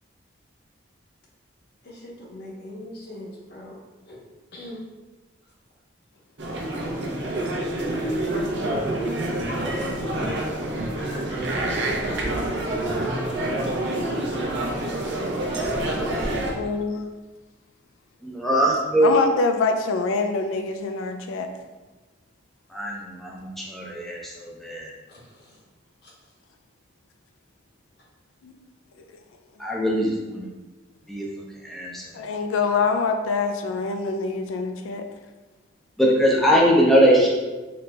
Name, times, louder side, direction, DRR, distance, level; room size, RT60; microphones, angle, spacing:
voice 1, 1.8-3.8 4.1-4.2 4.5-4.8 25.1-25.2 26.0-26.1, left 1 dB, 55° left, -4 dB, 0.9 m, -40 dB
sound 1, 6.4-16.5, right 1 dB, 60° right, 0.6 m, -27 dB
voice 2, 16.0-16.4 18.2-19.1 22.7-24.9 29.6-30.5 31.1-31.3 31.6-32.0 36.0-37.3, equal, ahead, -4 dB, 0.5 m, -21 dB
voice 3, 16.6-17.0 19.0-21.5 28.4-28.5 32.1-35.0, left 4 dB, 90° left, 6 dB, 0.3 m, -25 dB
4.0 x 3.2 x 2.2 m, 1.2 s
head